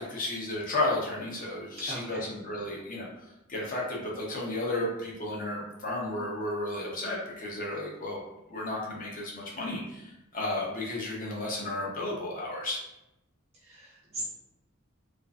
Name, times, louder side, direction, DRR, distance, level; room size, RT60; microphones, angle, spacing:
voice 1, 0.0-3.1 3.5-8.2 8.5-12.8, left 2 dB, 40° left, -3 dB, 0.7 m, -33 dB
voice 2, 1.9-2.3 13.6-14.2, right 2 dB, 30° right, -8 dB, 0.4 m, -40 dB
2.4 x 2.4 x 2.3 m, 0.91 s
head